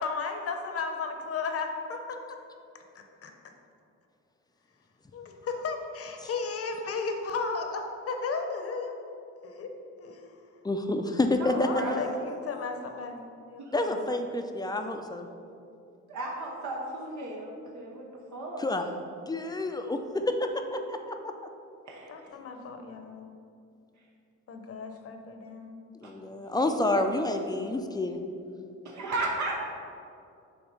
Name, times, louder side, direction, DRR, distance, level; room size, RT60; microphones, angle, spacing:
voice 1, 0.0-2.2 2.9-3.3 5.1-9.0 9.4-9.7 10.0-10.3 11.6-14.0 22.1-23.3 24.5-25.8, left 4 dB, 50° left, 4 dB, 0.8 m, -35 dB
voice 2, 10.6-11.7 13.7-15.3 18.6-20.2 20.7-21.2 26.0-28.2, left 2 dB, 15° left, 5 dB, 0.4 m, -29 dB
voice 3, 11.4-12.1 13.6-13.7 16.1-18.0 18.3-18.6 21.9-22.3 26.0-26.1 28.8-29.6, right 2 dB, 70° right, -2 dB, 0.9 m, -34 dB
7.2 x 2.9 x 5.3 m, 2.6 s
cardioid pair, 90°, 30 cm